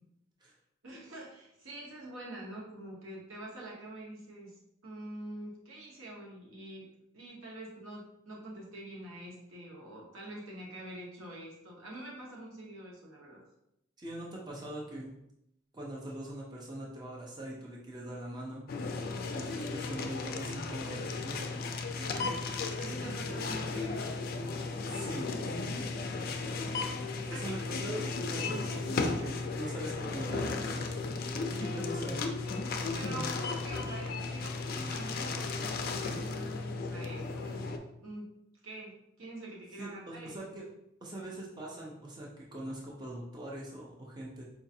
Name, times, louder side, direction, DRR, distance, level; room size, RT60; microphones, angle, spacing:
voice 1, 0.8-6.9 7.1-13.4 19.0-19.3 21.9-24.2 27.3-27.6 28.4-28.7 32.9-37.8 38.0-38.3 38.6-40.4, right 1 dB, 80° right, -3 dB, 0.9 m, -45 dB
voice 2, 14.0-15.1 15.7-18.7 19.3-21.5 22.1-22.3 23.0-23.1 24.8-25.7 27.3-30.9 31.3-32.3 39.8-40.7 41.0-44.4, right 1 dB, 20° right, -3 dB, 0.5 m, -42 dB
sound 1, 18.7-37.8, left 3 dB, 45° left, 0.3 m, -35 dB
4.6 x 2.4 x 2.6 m, 0.79 s
head